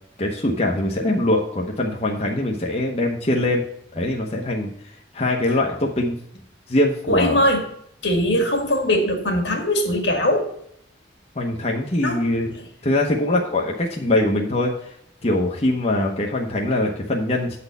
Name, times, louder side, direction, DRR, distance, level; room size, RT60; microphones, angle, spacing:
voice 1, 0.2-3.6 3.9-4.7 5.1-6.2 6.7-7.4 11.3-12.5 12.8-15.0 15.2-17.6, left 1 dB, 35° left, -1 dB, 0.9 m, -22 dB
voice 2, 7.1-7.6 8.0-10.5 12.0-12.2, left 1 dB, 75° left, 3 dB, 1.9 m, -20 dB
8.5 x 4.2 x 6.7 m, 0.69 s
head